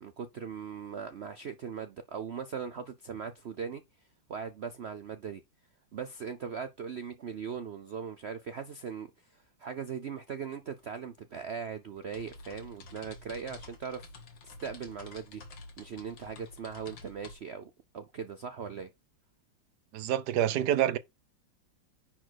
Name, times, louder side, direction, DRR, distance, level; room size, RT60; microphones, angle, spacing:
voice 1, 0.0-3.8 4.3-5.4 5.9-14.0 14.4-15.4 15.8-18.9, right 6 dB, 90° right, 0.5 m, -39 dB
sound 1, 11.1-17.3, left 3 dB, 75° left, 2.4 m, -50 dB
voice 2, 19.9-21.0, right 11 dB, 70° right, 1.2 m, -27 dB
10.0 x 4.2 x 4.6 m
omnidirectional pair, 2.1 m